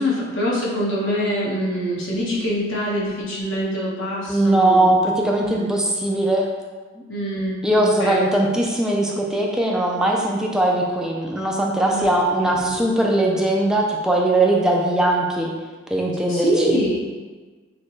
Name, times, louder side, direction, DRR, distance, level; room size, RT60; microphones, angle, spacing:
voice 1, 0.0-4.9 5.5-5.6 7.1-8.3 11.9-12.1 12.4-12.8 16.3-17.0, equal, 75° left, -5 dB, 1.2 m, -24 dB
voice 2, 4.3-6.5 7.0-7.1 7.6-15.5 15.9-16.8, right 1 dB, 5° right, -1 dB, 0.3 m, -20 dB
6.3 x 2.2 x 3.0 m, 1.4 s
head